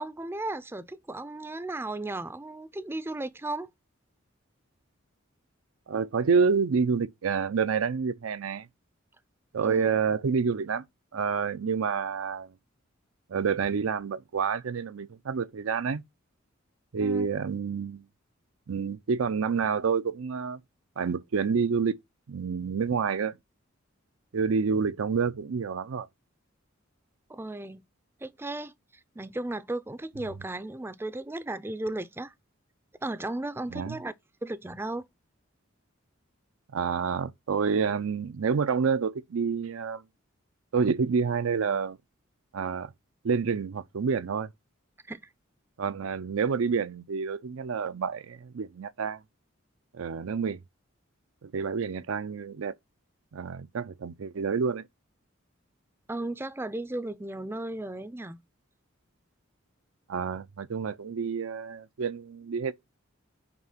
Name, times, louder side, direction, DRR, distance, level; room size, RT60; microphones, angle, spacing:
voice 1, 0.0-3.7 9.6-9.9 17.0-17.3 27.3-27.8 28.2-28.7 29.2-32.3 33.0-34.1 34.4-35.0 45.1-45.2 56.1-58.4, right 2 dB, 10° right, 0.4 m, -35 dB
voice 2, 5.9-8.7 9.5-10.8 11.1-12.5 13.3-16.0 16.9-18.1 18.7-20.6 21.0-22.0 22.3-23.4 24.3-26.1 33.7-34.0 36.7-40.0 40.7-42.0 42.5-42.9 43.2-44.5 45.8-49.2 49.9-50.6 51.4-52.8 53.3-54.9 60.1-62.7, right 5 dB, 80° right, 0.5 m, -28 dB
6.1 x 5.0 x 5.6 m
head